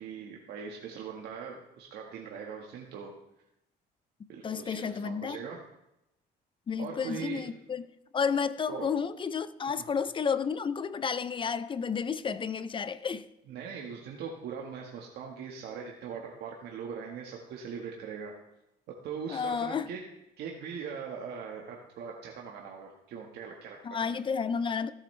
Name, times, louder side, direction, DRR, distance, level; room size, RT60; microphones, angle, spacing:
voice 1, 0.0-3.1 4.3-5.6 6.8-7.5 8.7-8.9 13.5-18.3 19.0-20.0 20.4-23.8 24.0-24.2, right 6 dB, 75° right, 1.6 m, -40 dB
voice 2, 4.4-5.4 6.7-7.8 8.1-13.3 19.3-19.9 23.8-24.9, left 6 dB, 30° left, 0.5 m, -31 dB
16.5 x 8.4 x 3.3 m
cardioid pair, 110°, 17 cm